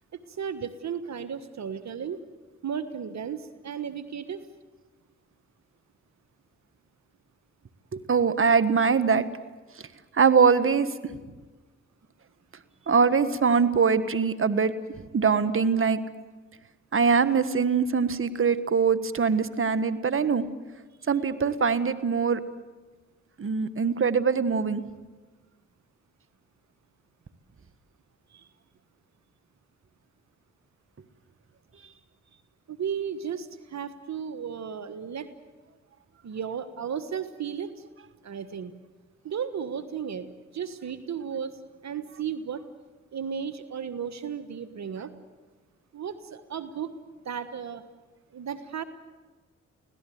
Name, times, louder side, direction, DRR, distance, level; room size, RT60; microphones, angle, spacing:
voice 1, 0.1-2.2 2.6-4.4 28.3-28.5 32.7-35.3 36.2-37.9 38.2-38.7 39.2-40.3 40.5-42.7 43.1-45.1 45.9-46.9 47.2-47.8 48.3-48.8, right 7 dB, 65° right, 12 dB, 1.4 m, -34 dB
voice 2, 7.9-9.3 10.1-10.9 12.9-14.7 15.1-16.0 16.9-20.4 21.1-22.4 23.4-24.8, right 5 dB, 45° right, 13 dB, 1.5 m, -22 dB
25.5 x 17.0 x 9.4 m, 1.3 s
supercardioid pair, 50°, 30 cm